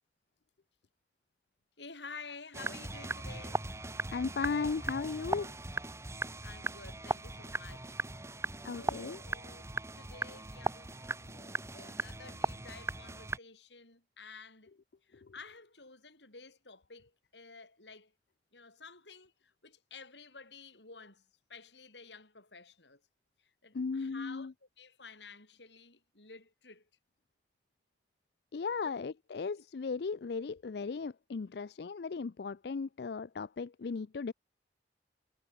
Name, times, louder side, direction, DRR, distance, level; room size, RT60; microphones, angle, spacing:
voice 1, 1.8-3.7 6.2-8.0 8.6-14.7 15.0-18.1 18.5-23.0 23.4-26.9 28.8-29.0 29.6-29.7, left 4 dB, 85° left, 7.7 m, -52 dB
sound 1, 2.5-13.4, right 2 dB, 15° right, 1.3 m, -38 dB
voice 2, 4.1-5.5 8.6-9.2 15.1-15.3 23.7-24.5 28.5-34.3, left 4 dB, 65° left, 0.4 m, -36 dB
head